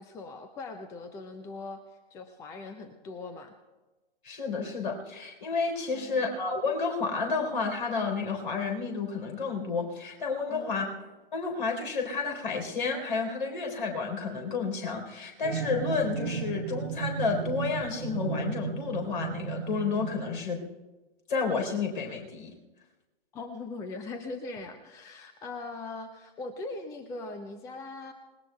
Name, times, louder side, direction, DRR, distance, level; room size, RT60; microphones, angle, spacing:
voice 1, 0.0-3.5 5.9-6.3 10.5-10.9 23.3-28.1, left 3 dB, 10° left, 8 dB, 0.5 m, -41 dB
voice 2, 4.2-10.9 11.3-20.6 21.3-22.5, left 4 dB, 55° left, 3 dB, 4.0 m, -31 dB
sound 1, 15.4-20.6, right 6 dB, 75° right, 1.2 m, -34 dB
27.0 x 19.5 x 2.3 m, 1.1 s
figure-of-eight pair, 120°, 31 cm